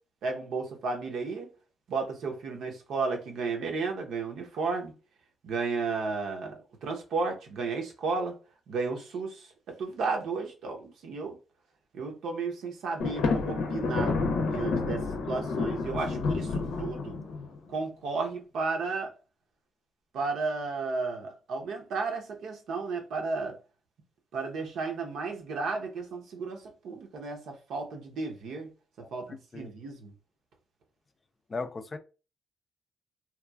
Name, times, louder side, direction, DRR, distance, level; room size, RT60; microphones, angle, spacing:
voice 1, 0.2-1.5 1.9-4.9 5.4-8.4 8.7-11.4 11.9-14.2 14.5-17.1 17.7-19.1 20.1-23.6 24.3-28.7 29.0-30.1, right 4 dB, 75° right, 0.7 m, -33 dB
Thunder, 13.0-17.6, left 4 dB, 85° left, 0.6 m, -29 dB
voice 2, 29.0-29.7 31.5-32.0, left 4 dB, 30° left, 0.3 m, -39 dB
2.9 x 2.3 x 2.3 m
cardioid pair, 90°, 0 cm